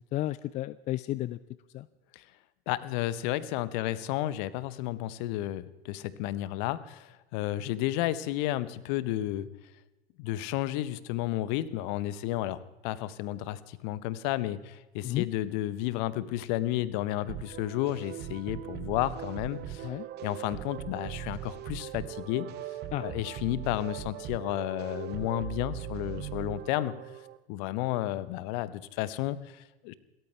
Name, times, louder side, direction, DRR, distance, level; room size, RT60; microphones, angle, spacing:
voice 1, 0.1-1.4 1.7-1.9 15.0-15.3 19.8-20.1 22.9-23.1, left 15 dB, 25° left, 18 dB, 0.4 m, -32 dB
voice 2, 2.7-9.5 10.2-19.9 20.2-22.5 23.0-26.9 27.5-29.9, left 14 dB, 45° left, 17 dB, 1.1 m, -32 dB
sound 1, 17.3-27.4, right 13 dB, 30° right, 1.1 m, -40 dB
28.0 x 13.5 x 3.4 m, 1.1 s
figure-of-eight pair, 85°, 31 cm